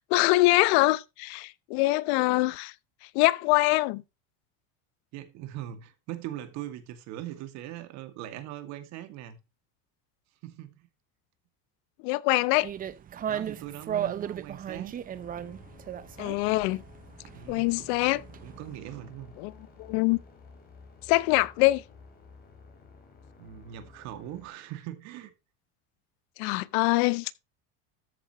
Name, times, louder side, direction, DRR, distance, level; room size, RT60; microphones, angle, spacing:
voice 1, 0.0-2.7 3.1-4.0 12.0-12.7 16.2-16.8 17.5-18.2 19.4-19.5 19.9-20.2 21.1-21.8 26.4-27.3, left 21 dB, 75° left, 0.9 m, -24 dB
voice 2, 5.1-9.4 10.4-10.9 13.3-14.9 17.3-17.9 18.4-19.3 23.4-25.3, right 12 dB, 55° right, 2.3 m, -40 dB
sound 1, 12.6-18.8, right 9 dB, 25° right, 0.8 m, -36 dB
sound 2, 15.1-24.5, left 4 dB, 30° left, 4.2 m, -52 dB
14.0 x 8.5 x 3.1 m
cardioid pair, 155°, 33 cm